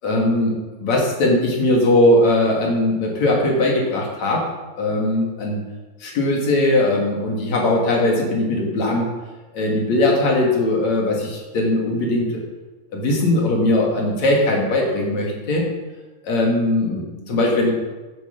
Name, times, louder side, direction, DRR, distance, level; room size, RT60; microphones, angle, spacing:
voice 1, 0.0-4.5 4.8-5.6 6.0-9.1 9.5-12.4 12.9-15.7 16.2-17.7, left 1 dB, 40° left, -1 dB, 3.2 m, -19 dB
16.0 x 10.5 x 5.6 m, 1.2 s
omnidirectional pair, 5.8 m